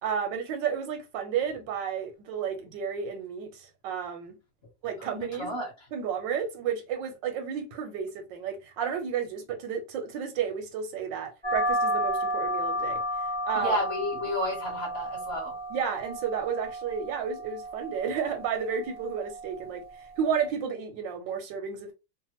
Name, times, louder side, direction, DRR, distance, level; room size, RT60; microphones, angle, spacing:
voice 1, 0.0-4.4 4.8-5.5 5.9-13.0 13.5-13.8 15.7-19.8 20.2-21.9, right 7 dB, 85° right, 1.4 m, -32 dB
voice 2, 5.0-5.7 13.5-15.6, left 1 dB, 40° left, 1.2 m, -31 dB
sound 1, 11.4-20.5, equal, 10° right, 0.5 m, -33 dB
3.3 x 2.1 x 2.8 m
omnidirectional pair, 1.9 m